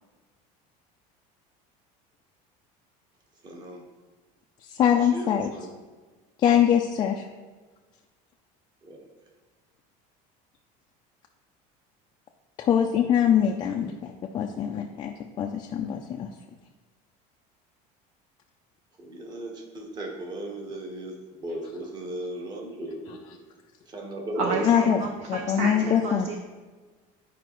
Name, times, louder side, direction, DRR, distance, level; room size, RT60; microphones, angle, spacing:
voice 1, 3.4-3.8 5.0-5.7 8.8-9.1 19.0-23.2 23.9-24.6 25.3-25.9, right 1 dB, 25° right, 1 dB, 1.2 m, -36 dB
voice 2, 4.7-5.5 6.4-7.2 12.6-16.3 24.6-25.0 25.3-26.3, left 9 dB, 25° left, 2 dB, 0.4 m, -23 dB
voice 3, 24.3-26.4, right 4 dB, 40° right, 4 dB, 0.5 m, -31 dB
11.0 x 4.9 x 3.0 m, 1.4 s
cardioid pair, 165°, 18 cm